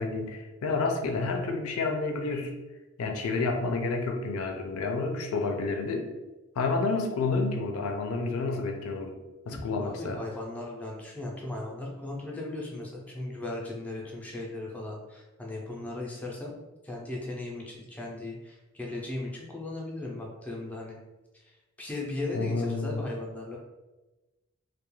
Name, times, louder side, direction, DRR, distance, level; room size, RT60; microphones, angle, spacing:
voice 1, 0.0-2.5 3.0-6.1 6.6-9.2 9.5-10.2 22.3-23.0, left 3 dB, 90° left, 4 dB, 0.4 m, -29 dB
voice 2, 9.5-16.6 16.8-21.0 21.4-23.6, left 2 dB, 5° left, -3 dB, 0.4 m, -37 dB
2.3 x 2.1 x 3.0 m, 1.1 s
head